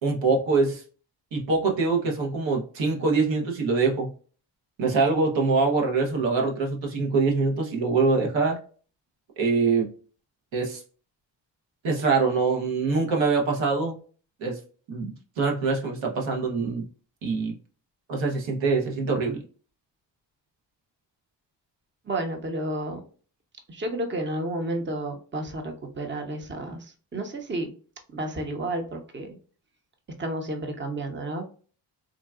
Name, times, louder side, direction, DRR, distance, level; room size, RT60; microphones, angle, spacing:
voice 1, 0.0-0.8 1.3-4.1 4.8-8.6 9.4-9.9 10.5-10.8 11.8-14.0 14.4-14.6 14.9-16.8 17.2-17.5 18.1-19.4, right 4 dB, 80° right, 1 dB, 0.9 m, -24 dB
voice 2, 22.0-23.0 23.7-27.7 28.1-29.3 30.2-31.4, right 1 dB, 25° right, 4 dB, 0.8 m, -31 dB
3.7 x 2.2 x 2.3 m, 0.40 s
cardioid pair, 70°, 45 cm